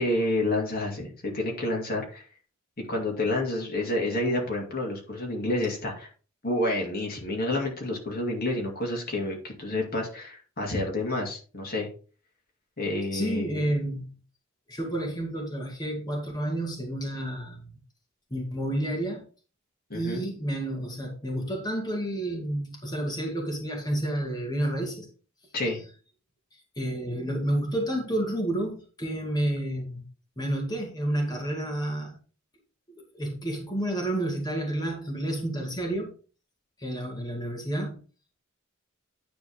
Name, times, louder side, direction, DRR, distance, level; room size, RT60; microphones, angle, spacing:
voice 1, 0.0-2.2 2.9-6.1 6.4-11.9 12.8-13.6 19.9-20.2 25.5-25.8, left 1 dB, 45° left, 0 dB, 2.4 m, -29 dB
voice 2, 13.1-14.1 14.7-17.7 18.3-19.2 19.9-25.1 26.8-30.0 30.4-32.2 32.9-36.1 36.8-38.0, right 1 dB, 20° left, -1 dB, 2.2 m, -30 dB
10.0 x 4.3 x 4.8 m, 0.37 s
head